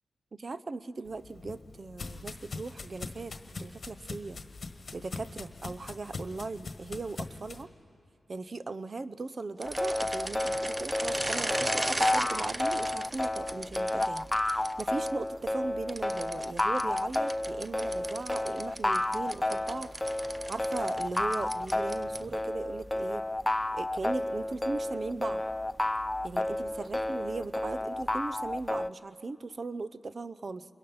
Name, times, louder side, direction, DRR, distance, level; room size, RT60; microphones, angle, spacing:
voice 1, 0.3-4.4 4.9-7.7 8.3-23.2 23.7-25.4 26.2-30.7, right 3 dB, 50° right, 14 dB, 0.7 m, -38 dB
sound 1, 1.1-7.6, left 4 dB, 60° left, 1.5 m, -42 dB
sound 2, 9.6-28.9, left 1 dB, 20° left, 0.5 m, -31 dB
sound 3, 9.6-15.1 15.9-22.4, right 1 dB, 20° right, 0.7 m, -37 dB
27.0 x 22.5 x 5.6 m, 2.6 s
cardioid pair, 50°, 0 cm